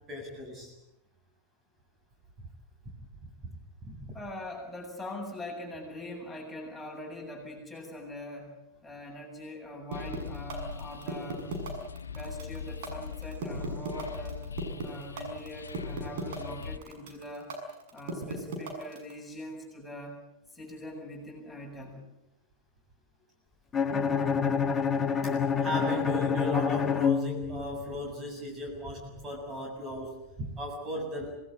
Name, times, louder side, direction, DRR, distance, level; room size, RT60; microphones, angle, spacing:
voice 1, 0.1-0.7 3.4-3.5 3.8-4.1 25.6-31.3, equal, 20° right, 2 dB, 7.5 m, -36 dB
voice 2, 4.1-8.5 8.8-11.4 12.1-14.4 14.8-17.5 17.9-20.2 20.5-22.0, left 1 dB, 5° left, -1 dB, 7.8 m, -42 dB
sound 1, 9.9-16.8, left 6 dB, 70° left, 1.0 m, -41 dB
sound 2, 9.9-19.1, right 4 dB, 55° right, 6.7 m, -37 dB
Bowed string instrument, 23.7-27.9, left 6 dB, 25° left, 1.6 m, -27 dB
27.0 x 19.5 x 8.9 m, 0.88 s
figure-of-eight pair, 90°, 0 cm